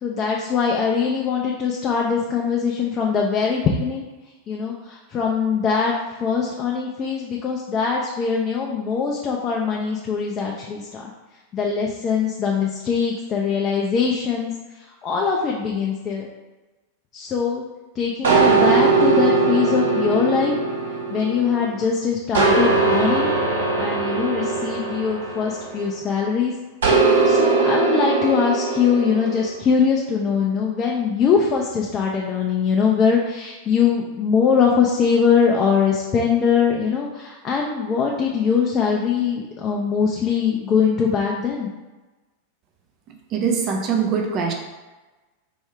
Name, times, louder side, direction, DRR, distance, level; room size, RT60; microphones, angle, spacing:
voice 1, 0.0-4.0 4.5-5.9 6.2-11.1 11.5-14.5 14.8-16.3 17.1-17.6 18.0-20.5 21.1-23.3 23.8-26.5 27.2-41.7, left 6 dB, 30° left, -1 dB, 0.5 m, -22 dB
sound 1, 18.2-21.8 22.3-26.1 26.8-29.5, right 3 dB, 65° right, 0.8 m, -20 dB
voice 2, 43.1-44.5, right 6 dB, 35° right, 2 dB, 0.5 m, -23 dB
4.6 x 2.7 x 3.3 m, 1.2 s
figure-of-eight pair, 90°, 0 cm